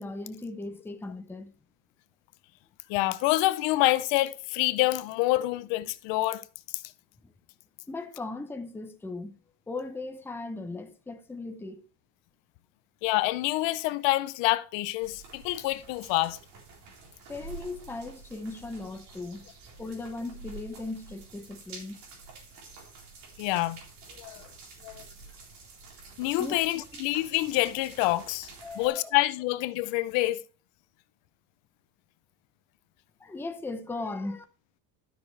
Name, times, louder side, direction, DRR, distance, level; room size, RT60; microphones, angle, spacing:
voice 1, 0.0-1.5 7.2-7.3 7.9-9.4 9.7-11.9 17.3-19.5 19.8-22.0 26.4-26.6 28.6-29.1 33.2-34.4, left 3 dB, 5° left, 0.7 m, -37 dB
voice 2, 2.9-6.4 6.7-6.8 13.0-16.4 23.4-23.8 24.2-24.5 24.8-25.0 26.2-28.5 28.8-30.4, left 17 dB, 70° left, 0.8 m, -27 dB
sound 1, 15.0-28.9, right 4 dB, 60° right, 4.0 m, -49 dB
12.5 x 6.5 x 3.3 m
cardioid pair, 145°, 46 cm